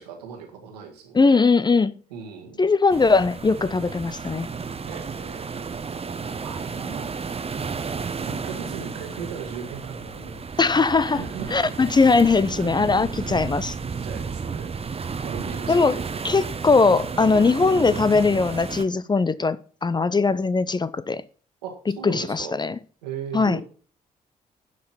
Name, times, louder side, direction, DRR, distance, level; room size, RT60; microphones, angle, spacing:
voice 1, 0.0-1.5 2.1-2.6 4.8-5.6 6.2-7.1 8.3-10.5 11.1-11.7 12.6-13.3 14.0-14.8 15.2-16.1 17.3-17.7 21.6-22.6 23.0-23.6, right 6 dB, 80° right, 1.8 m, -38 dB
voice 2, 1.1-1.9 2.6-4.5 10.6-11.2 11.5-13.7 15.7-16.0 16.2-21.2 22.0-22.7 23.3-23.6, left 4 dB, 20° left, 0.6 m, -20 dB
sound 1, 2.9-18.8, right 5 dB, 30° right, 1.0 m, -32 dB
11.5 x 5.7 x 5.7 m
figure-of-eight pair, 40°, 20 cm